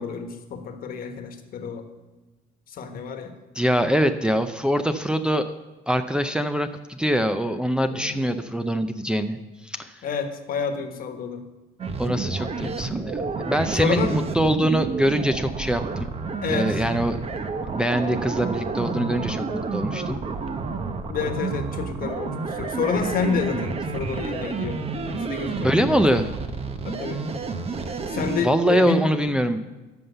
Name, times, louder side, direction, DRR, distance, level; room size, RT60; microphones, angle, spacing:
voice 1, 0.0-1.8 2.7-3.3 7.9-8.3 10.0-11.4 13.8-14.1 16.4-16.8 21.1-24.8 25.2-26.3 26.8-27.2 28.1-29.1, left 6 dB, 60° left, 6 dB, 1.4 m, -29 dB
voice 2, 3.6-5.5 5.9-9.4 9.6-10.0 12.0-16.1 16.5-17.2 17.7-20.2 25.6-26.3 28.4-29.6, equal, 5° right, 6 dB, 0.5 m, -23 dB
sound 1, 11.8-28.4, right 4 dB, 35° right, 0.9 m, -30 dB
13.5 x 5.6 x 6.7 m, 1.2 s
cardioid pair, 110°, 17 cm